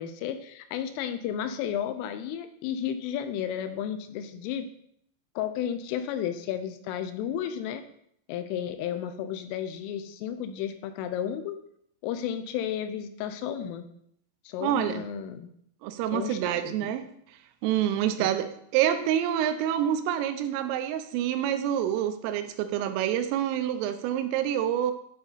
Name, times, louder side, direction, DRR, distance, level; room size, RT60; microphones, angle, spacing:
voice 1, 0.0-4.7 5.4-7.8 8.3-11.6 12.0-13.8 14.5-15.5 16.1-16.9 18.2-18.3, left 9 dB, 85° left, 9 dB, 3.1 m, -33 dB
voice 2, 14.6-15.0 15.8-17.1 17.6-24.9, right 10 dB, 85° right, 9 dB, 3.3 m, -27 dB
10.0 x 4.0 x 3.9 m, 0.70 s
omnidirectional pair, 5.8 m